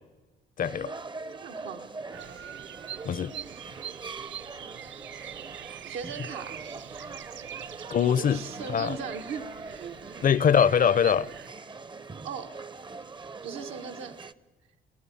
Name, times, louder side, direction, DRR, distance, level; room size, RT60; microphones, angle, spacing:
voice 1, 0.6-0.9 3.0-3.3 7.9-8.4 8.7-9.0 10.2-11.3, left 8 dB, 45° left, 0.6 m, -22 dB
sound 1, 0.6-14.3, right 4 dB, 25° right, 0.6 m, -43 dB
voice 2, 1.4-1.9 5.9-6.7 8.1-10.2 12.2-12.5 13.4-14.2, right 6 dB, 85° right, 1.6 m, -38 dB
Bird vocalization bird call bird song, 2.1-11.5, right 10 dB, 70° right, 0.6 m, -44 dB
27.5 x 15.5 x 7.1 m
cardioid pair, 90°, 20 cm